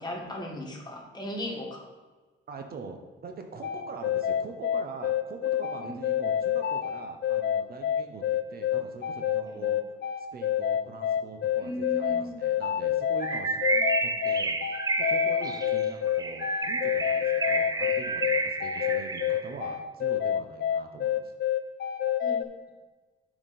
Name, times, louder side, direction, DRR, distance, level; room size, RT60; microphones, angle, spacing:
voice 1, 0.0-1.8 5.8-5.9 9.5-9.7 11.6-12.4 22.2-22.4, left 1 dB, 20° left, -1 dB, 1.8 m, -37 dB
voice 2, 2.5-9.8 10.2-13.6 14.0-14.6 15.0-21.3, right 4 dB, 50° right, 4 dB, 0.8 m, -43 dB
sound 1, 3.6-22.4, left 10 dB, 60° left, 0.6 m, -27 dB
Bird, 13.2-19.5, right 3 dB, 20° right, 0.5 m, -30 dB
7.2 x 5.0 x 4.2 m, 1.3 s
cardioid pair, 90°, 20 cm